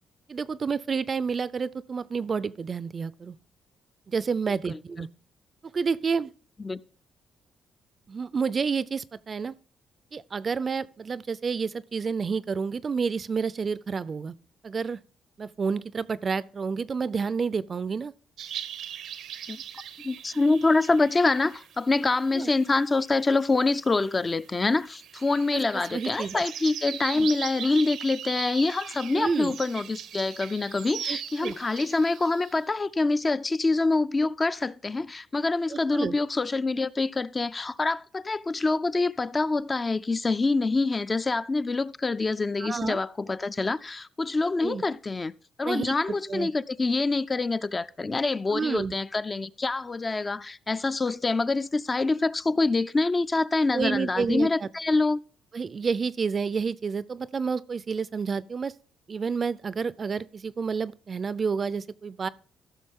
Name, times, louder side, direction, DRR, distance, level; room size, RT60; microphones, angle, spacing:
voice 1, 0.3-3.4 4.1-5.1 5.7-6.3 8.1-9.5 10.1-14.3 14.6-15.0 15.4-18.1 22.3-22.5 25.5-25.6 25.9-26.4 27.2-27.3 29.1-29.5 31.1-31.6 35.7-36.1 42.6-43.0 44.6-44.8 45.6-45.9 46.3-46.5 48.5-48.9 53.7-54.7 55.5-58.7 59.1-62.3, right 5 dB, 40° right, 0.4 m, -29 dB
sound 1, 18.4-32.6, right 9 dB, 80° right, 0.7 m, -40 dB
voice 2, 20.0-45.3 45.6-55.2, left 3 dB, 25° left, 0.4 m, -26 dB
14.5 x 6.1 x 3.7 m
cardioid pair, 90°, 0 cm